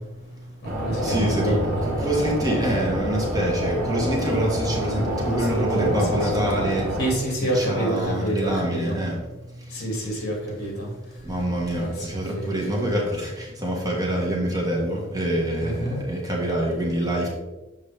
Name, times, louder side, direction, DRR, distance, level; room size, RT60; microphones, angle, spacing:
voice 1, 0.1-0.5 1.0-7.0 7.4-10.0 10.8-17.3, right 1 dB, 20° right, -3 dB, 1.4 m, -26 dB
voice 2, 0.6-1.8 5.0-6.3 7.0-8.9 9.7-10.9 11.7-12.9 15.6-16.0, right 1 dB, 55° left, -1 dB, 2.1 m, -28 dB
sound 1, 0.6-7.1, equal, 50° right, 1.7 m, -27 dB
7.2 x 4.7 x 3.3 m, 1.1 s
head